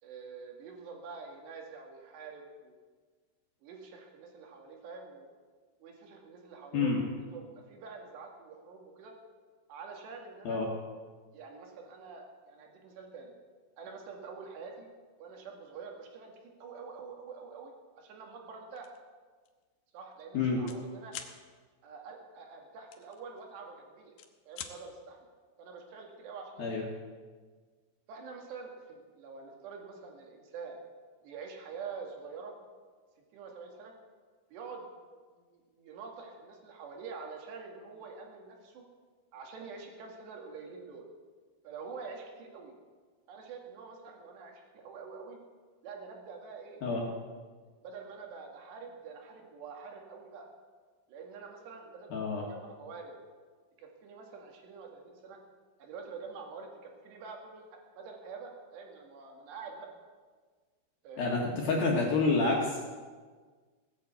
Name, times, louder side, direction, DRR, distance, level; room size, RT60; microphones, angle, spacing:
voice 1, 0.0-2.8 3.6-5.3 5.8-9.1 9.7-10.6 11.3-13.3 13.8-14.9 15.2-19.0 19.9-21.2 21.8-24.1 24.5-25.2 25.6-26.9 28.1-30.8 31.2-32.6 33.3-33.9 34.5-34.9 35.5-38.9 39.3-41.1 41.6-42.7 43.3-45.4 45.8-46.8 47.8-50.5 51.1-53.1 53.8-55.4 55.8-59.9 61.0-61.3, right 5 dB, 65° right, 1 dB, 4.0 m, -46 dB
sound 1, 18.8-19.0 19.4-19.6 19.9-20.8 21.1-21.4 22.9-23.7 24.0-24.8, left 9 dB, 80° left, 1.9 m, -45 dB
voice 2, 52.1-52.4 61.2-62.8, left 3 dB, 60° left, -2 dB, 3.2 m, -28 dB
18.0 x 9.3 x 8.1 m, 1.5 s
omnidirectional pair, 5.6 m